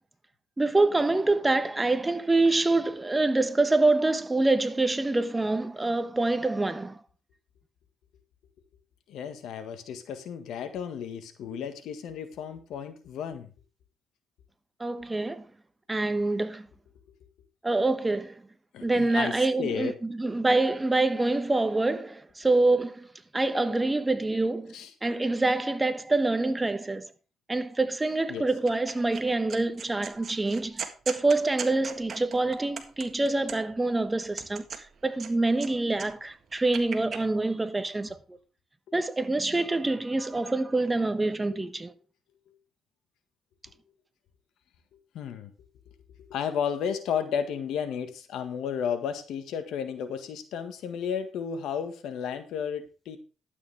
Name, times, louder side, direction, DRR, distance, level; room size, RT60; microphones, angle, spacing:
voice 1, 0.6-7.0 14.8-15.4 15.9-16.7 17.6-18.4 18.8-23.1 23.3-24.7 25.0-27.1 27.5-34.6 35.0-38.2 38.9-41.9, right 2 dB, 15° right, 1.1 m, -26 dB
voice 2, 9.1-13.5 18.7-19.9 24.7-24.9 28.3-28.5 41.5-41.6 45.1-45.5 46.3-53.2, left 7 dB, 80° left, 1.6 m, -33 dB
sound 1, 28.7-29.2 29.5-33.8 34.2-35.7 35.9-37.2, right 6 dB, 50° right, 1.7 m, -39 dB
12.0 x 8.4 x 3.5 m
cardioid pair, 90°, 0 cm